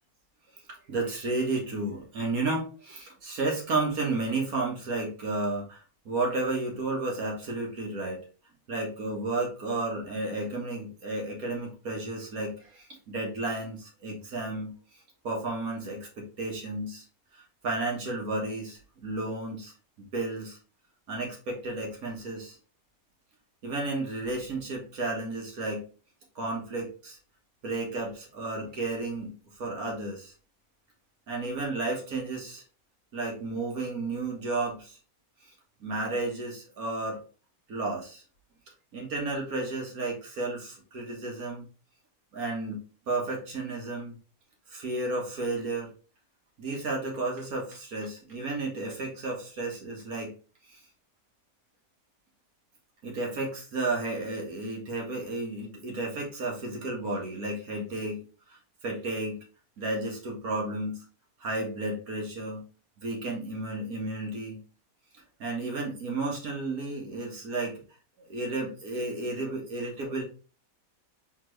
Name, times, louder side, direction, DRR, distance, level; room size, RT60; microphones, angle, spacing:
voice 1, 0.7-5.8 6.1-8.2 8.7-14.7 15.2-17.0 17.3-19.7 20.1-20.6 21.1-22.6 23.6-25.9 26.4-27.2 27.6-30.3 31.3-32.6 33.1-35.0 35.8-37.2 37.7-38.2 38.9-41.7 42.3-42.8 43.1-44.2 44.7-45.9 46.6-50.3 50.7-50.8 53.0-58.2 58.8-59.4 59.8-61.0 61.4-62.6 63.0-64.6 65.4-67.8 68.3-70.2, right 2 dB, 85° right, -1 dB, 1.9 m, -32 dB
4.4 x 3.6 x 3.2 m, 0.36 s
omnidirectional pair, 1.5 m